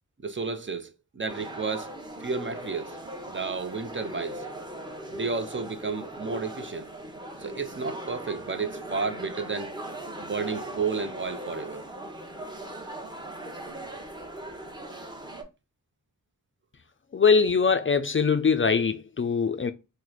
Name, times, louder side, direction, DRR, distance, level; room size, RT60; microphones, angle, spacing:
voice 1, 0.2-1.9 2.2-3.0 3.3-4.5 5.1-6.9 7.4-9.7 10.2-11.9, right 4 dB, 35° right, 0.5 m, -32 dB
sound 1, 1.3-15.4, right 1 dB, 15° right, 0.9 m, -39 dB
voice 2, 17.1-19.7, left 5 dB, 35° left, 0.4 m, -22 dB
3.0 x 2.1 x 3.9 m
cardioid pair, 50°, 34 cm